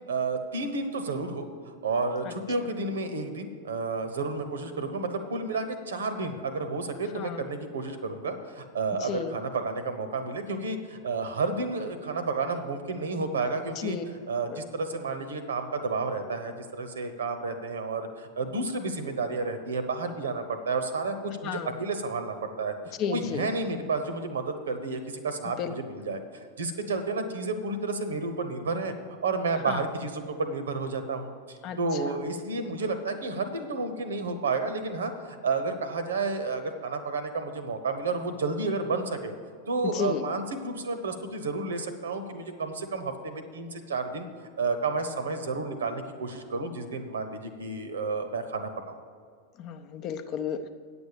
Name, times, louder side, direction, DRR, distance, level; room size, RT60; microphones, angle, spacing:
voice 1, 0.1-14.0 14.3-22.7 23.1-26.2 26.6-28.9 29.2-39.3 39.7-44.3 44.6-49.0, right 3 dB, 65° right, 9 dB, 1.0 m, -31 dB
voice 2, 9.0-9.3 13.8-14.0 21.4-21.8 23.0-23.5 25.6-25.7 29.6-29.8 31.6-31.8 39.9-40.2 49.6-50.7, left 7 dB, 40° left, 8 dB, 0.7 m, -32 dB
9.5 x 7.1 x 6.7 m, 2.1 s
figure-of-eight pair, 90°, 0 cm